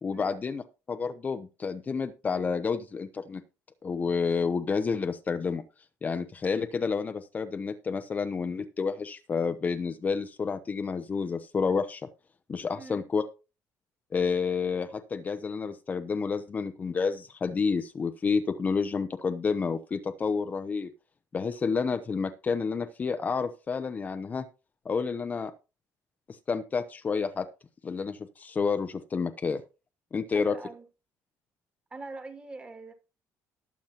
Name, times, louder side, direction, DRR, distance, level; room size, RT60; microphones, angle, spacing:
voice 1, 0.0-3.4 3.8-5.6 6.0-12.1 12.5-13.2 14.1-20.9 21.3-24.4 24.8-25.5 26.3-27.5 27.8-29.6 30.1-30.6, left 5 dB, 25° left, 0.8 m, -30 dB
voice 2, 30.3-30.9 31.9-32.9, right 3 dB, 20° right, 2.3 m, -43 dB
19.5 x 7.3 x 2.9 m
cardioid pair, 135°, 6 cm